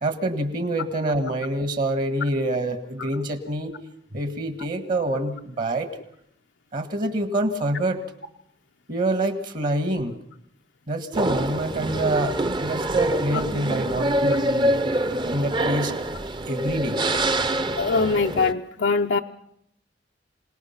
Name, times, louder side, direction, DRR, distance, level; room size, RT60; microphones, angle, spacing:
voice 1, 0.0-3.7 4.1-5.9 6.7-8.0 8.9-10.1 10.9-14.7 15.3-15.9 16.5-17.0, right 1 dB, 50° right, 8 dB, 1.6 m, -26 dB
sound 1, 11.1-18.5, right 1 dB, 25° right, 0.7 m, -25 dB
voice 2, 17.8-19.2, left 4 dB, 85° left, 3 dB, 0.7 m, -22 dB
27.0 x 18.5 x 5.9 m, 0.72 s
head